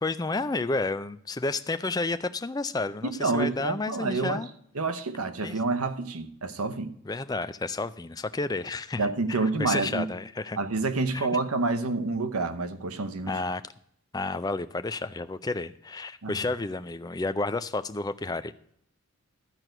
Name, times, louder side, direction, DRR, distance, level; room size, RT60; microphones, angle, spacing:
voice 1, 0.0-4.5 5.4-5.6 7.1-10.6 11.1-11.3 13.3-13.6 14.1-18.5, left 3 dB, 15° left, 0.4 m, -31 dB
voice 2, 3.0-4.4 4.7-6.9 9.0-10.1 10.6-13.4 16.2-16.3, right 3 dB, 85° right, 1.0 m, -28 dB
12.5 x 4.6 x 7.8 m
head